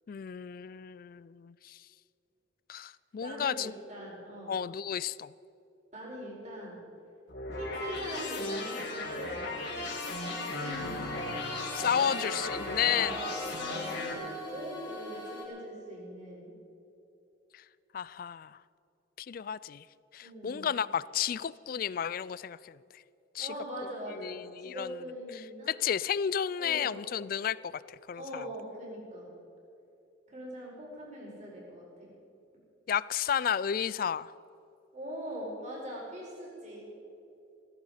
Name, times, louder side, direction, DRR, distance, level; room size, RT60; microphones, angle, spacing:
voice 1, 0.1-1.8 2.7-3.7 4.5-5.3 10.8-11.1 11.7-13.2 17.5-17.6 17.9-18.6 19.2-19.8 20.1-23.0 23.3-23.5 24.1-25.0 25.7-28.5 32.9-34.3, left 8 dB, 45° left, 19 dB, 0.3 m, -32 dB
voice 2, 3.2-4.5 5.9-6.9 7.5-9.6 10.6-11.4 11.9-12.4 12.9-13.3 13.6-16.5 20.2-20.7 23.4-25.7 26.6-27.0 28.1-29.3 30.3-32.1 34.9-36.9, equal, 35° right, -3 dB, 4.8 m, -41 dB
sound 1, 7.3-14.1, left 2 dB, 60° left, 4.0 m, -36 dB
sound 2, 10.1-15.4, equal, 20° left, 3.1 m, -42 dB
17.0 x 15.0 x 5.0 m, 2.8 s
head